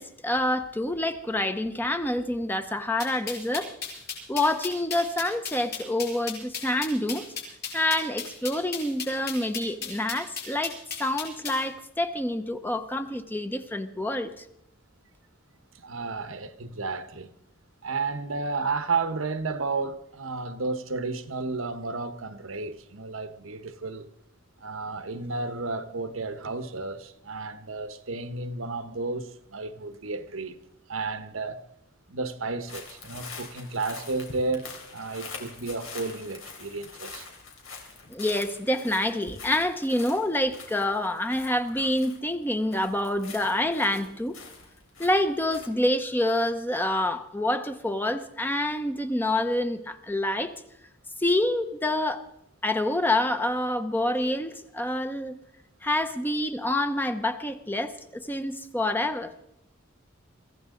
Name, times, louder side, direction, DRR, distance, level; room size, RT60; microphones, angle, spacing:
voice 1, 0.0-3.7 4.3-7.3 7.7-14.4 38.1-44.4 45.0-50.5 51.2-52.2 52.6-55.4 55.8-59.3, left 1 dB, 10° left, 0.8 m, -27 dB
sound 1, 3.0-11.6, left 6 dB, 50° left, 6.1 m, -35 dB
voice 2, 15.7-17.3 17.8-24.1 24.6-30.6 30.9-31.6 32.1-37.3, right 3 dB, 90° right, 1.2 m, -32 dB
sound 2, 32.7-42.4 42.7-45.7, left 4 dB, 90° left, 3.6 m, -44 dB
23.5 x 15.5 x 3.8 m
head